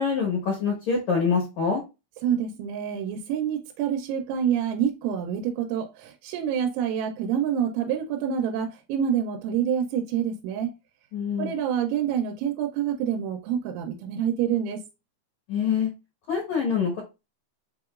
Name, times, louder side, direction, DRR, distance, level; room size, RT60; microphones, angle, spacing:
voice 1, 0.0-1.8 11.1-11.5 15.5-15.9 16.3-17.0, left 6 dB, 75° left, 1.6 m, -25 dB
voice 2, 2.2-10.7 11.4-14.8, right 8 dB, 90° right, 3.0 m, -27 dB
7.3 x 2.9 x 2.4 m
omnidirectional pair, 5.3 m